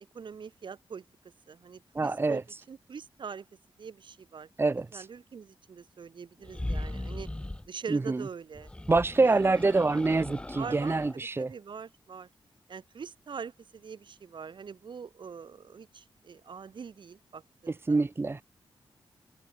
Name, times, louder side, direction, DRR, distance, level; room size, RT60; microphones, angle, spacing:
voice 1, 0.1-1.0 1.5-3.5 3.8-4.5 4.9-7.3 7.7-8.7 9.2-9.6 10.5-12.3 12.7-18.0, right 6 dB, 65° right, 7.1 m, -43 dB
voice 2, 1.9-2.4 4.6-5.1 7.9-8.2 8.9-11.5 17.9-18.4, right 3 dB, 25° right, 1.2 m, -26 dB
sound 1, 6.4-7.7 8.5-11.2, left 1 dB, 10° left, 2.2 m, -38 dB
wide cardioid pair, 130°, 9 cm